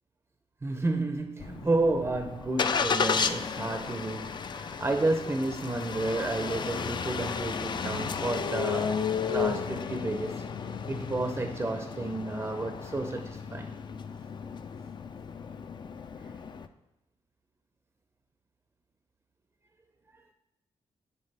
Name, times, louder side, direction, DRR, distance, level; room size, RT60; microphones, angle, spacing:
voice 1, 0.6-9.0 9.3-10.4 10.9-13.7 20.1-20.2, right 2 dB, 20° right, 0.5 m, -31 dB
Engine starting, 1.4-16.7, left 6 dB, 40° left, 0.4 m, -33 dB
9.8 x 4.7 x 3.3 m
cardioid pair, 100°, 12 cm